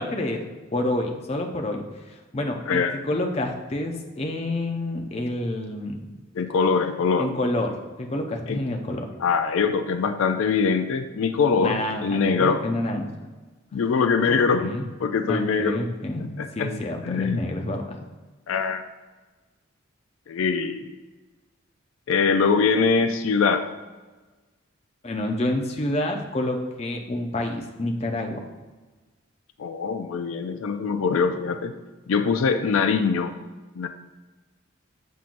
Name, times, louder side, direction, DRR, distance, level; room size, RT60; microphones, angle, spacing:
voice 1, 0.0-6.1 7.2-9.1 11.6-13.1 14.3-14.8 15.3-18.0 25.0-28.4, left 1 dB, 30° left, 3 dB, 0.6 m, -28 dB
voice 2, 6.3-7.3 8.5-8.6 9.2-12.6 13.7-14.7 15.0-15.8 16.2-16.7 17.0-17.5 18.5-18.8 20.3-20.9 22.1-23.7 29.6-31.8 32.1-33.3 33.8-33.9, left 5 dB, 80° left, 9 dB, 0.4 m, -23 dB
7.5 x 5.5 x 2.5 m, 1.3 s
head